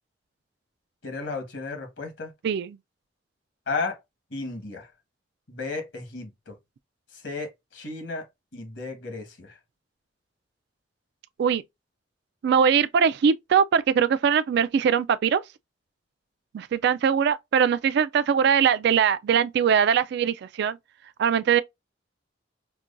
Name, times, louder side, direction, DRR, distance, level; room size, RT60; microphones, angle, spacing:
voice 1, 1.0-2.3 3.7-4.0 4.3-4.9 5.5-6.6 7.1-8.3 8.5-9.6, left 3 dB, 75° left, 1.3 m, -34 dB
voice 2, 2.4-2.8 11.4-11.6 12.4-15.4 16.5-20.8 21.2-21.6, right 7 dB, 65° right, 0.3 m, -21 dB
5.8 x 2.2 x 2.5 m
head